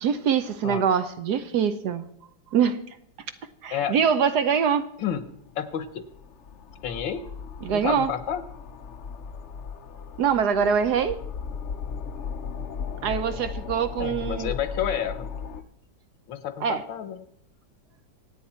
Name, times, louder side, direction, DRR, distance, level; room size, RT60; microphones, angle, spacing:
voice 1, 0.0-2.0 2.5-2.8 3.6-4.8 7.6-8.1 10.2-11.2 13.0-14.5 16.6-16.8, right 7 dB, 65° right, 10 dB, 1.1 m, -24 dB
sound 1, 5.2-15.6, left 6 dB, 60° left, 0.8 m, -37 dB
voice 2, 5.6-6.0 6.8-7.2 7.7-8.4 14.0-15.3 16.3-17.2, left 9 dB, 75° left, 12 dB, 1.7 m, -30 dB
25.5 x 9.0 x 4.3 m, 0.70 s
omnidirectional pair, 2.1 m